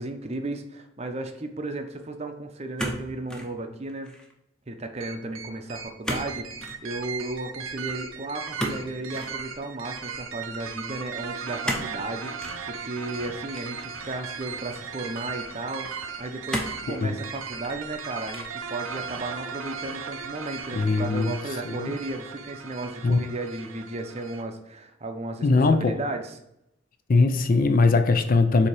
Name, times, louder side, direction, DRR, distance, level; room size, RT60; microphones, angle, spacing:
voice 1, 0.0-4.1 4.7-6.5 6.8-26.4, right 2 dB, 30° right, 6 dB, 0.6 m, -34 dB
sound 1, 2.8-3.5 3.9-4.3 6.0-6.3 6.6-6.8 8.6-9.4 11.6-12.0 12.4-12.6 13.5-14.3 15.0-15.1 16.5-16.9 17.5-18.0 18.3-18.7, equal, 5° left, 0.7 m, -32 dB
sound 2, 5.0-24.4, right 6 dB, 85° right, 0.6 m, -37 dB
voice 2, 20.7-21.4 21.7-21.9 23.0-23.2 25.4-26.0 27.1-28.7, left 3 dB, 45° left, 8 dB, 0.4 m, -21 dB
7.1 x 2.8 x 4.7 m, 0.80 s
head